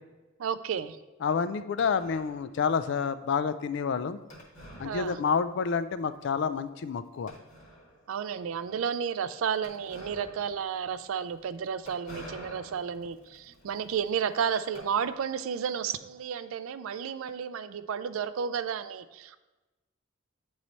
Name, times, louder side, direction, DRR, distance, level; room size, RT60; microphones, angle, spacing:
voice 1, 0.4-1.0 4.8-5.2 8.1-19.4, right 7 dB, 75° right, 13 dB, 0.4 m, -32 dB
voice 2, 1.2-4.2 4.8-7.3, left 6 dB, 55° left, 13 dB, 0.3 m, -29 dB
sound 1, 1.8-2.6 4.3-5.7 5.9-6.0 6.6-6.7 7.3-8.1 9.6-15.5, equal, 35° left, 1.3 m, -49 dB
8.7 x 3.2 x 4.0 m, 1.1 s
head